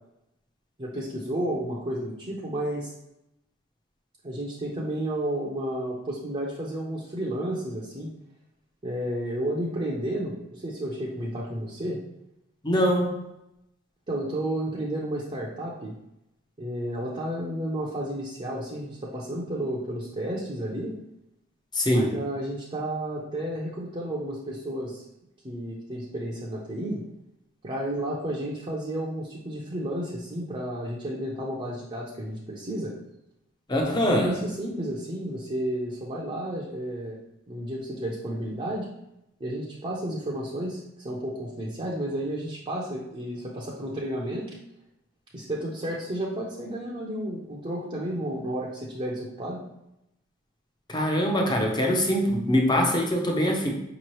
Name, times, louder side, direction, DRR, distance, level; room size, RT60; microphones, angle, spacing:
voice 1, 0.8-2.9 4.2-8.1 8.8-12.0 14.1-15.9 16.6-20.9 21.9-25.0 25.4-27.0 27.6-32.9 34.1-37.2 37.5-38.9 39.4-44.5 45.3-49.6, right 1 dB, 30° right, -5 dB, 0.6 m, -32 dB
voice 2, 12.6-13.2 21.7-22.1 33.7-34.4 50.9-53.7, equal, 20° left, 1 dB, 0.7 m, -23 dB
5.4 x 2.9 x 3.1 m, 0.85 s
head